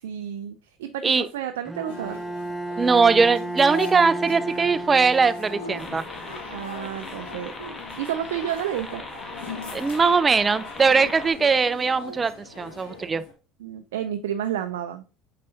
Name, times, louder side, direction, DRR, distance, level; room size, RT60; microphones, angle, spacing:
voice 1, 0.0-2.2 6.5-7.5 8.0-9.0 13.6-15.0, right 10 dB, 85° right, 0.5 m, -30 dB
Bowed string instrument, 1.7-6.2, right 2 dB, 5° right, 0.9 m, -33 dB
sound 1, 1.8-13.3, left 4 dB, 80° left, 1.8 m, -41 dB
voice 2, 2.8-6.0 9.7-13.2, right 4 dB, 25° right, 0.5 m, -20 dB
sound 2, 5.8-11.3, left 2 dB, 25° left, 1.3 m, -39 dB
6.6 x 5.4 x 2.7 m
hypercardioid pair, 75°, 0 cm